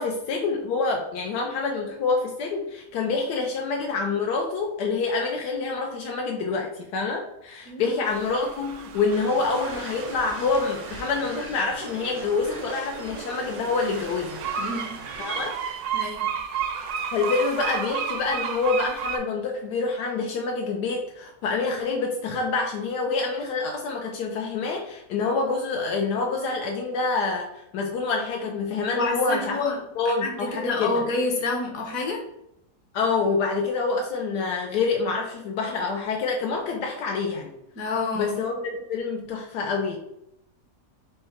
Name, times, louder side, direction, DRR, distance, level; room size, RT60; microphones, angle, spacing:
voice 1, 0.0-14.4 15.2-15.5 17.1-29.6 30.0-31.0 32.9-37.5 38.1-40.0, left 4 dB, 80° left, 1 dB, 1.2 m, -27 dB
voice 2, 7.7-8.0 14.6-15.0 15.9-16.2 29.0-29.8 30.0-32.2 37.8-38.3, left 3 dB, 60° left, 1 dB, 1.3 m, -28 dB
sound 1, 8.0-19.2, right 7 dB, 70° right, 1.0 m, -33 dB
sound 2, 9.1-15.5, right 2 dB, 45° right, 0.6 m, -40 dB
5.6 x 2.1 x 4.2 m, 0.80 s
omnidirectional pair, 1.8 m